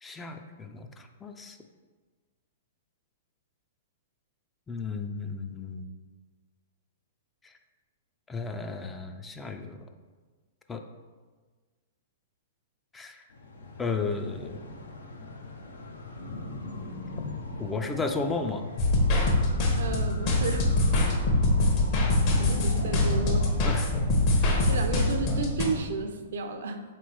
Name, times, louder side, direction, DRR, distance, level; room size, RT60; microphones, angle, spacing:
voice 1, 0.0-1.6 4.7-5.9 7.4-7.5 8.3-9.9 10.7-10.8 12.9-13.2 13.8-14.6 17.6-18.7 21.3-21.4 23.6-23.9, left 4 dB, 15° left, 5 dB, 0.3 m, -34 dB
sound 1, 13.3-23.7, left 2 dB, 70° left, 0.5 m, -40 dB
sound 2, 18.8-25.7, left 2 dB, 40° left, 1.0 m, -24 dB
voice 2, 19.8-20.7 22.4-23.6 24.7-26.8, right 4 dB, 65° right, 7 dB, 0.4 m, -32 dB
3.8 x 3.0 x 4.5 m, 1.4 s
figure-of-eight pair, 110°, 0 cm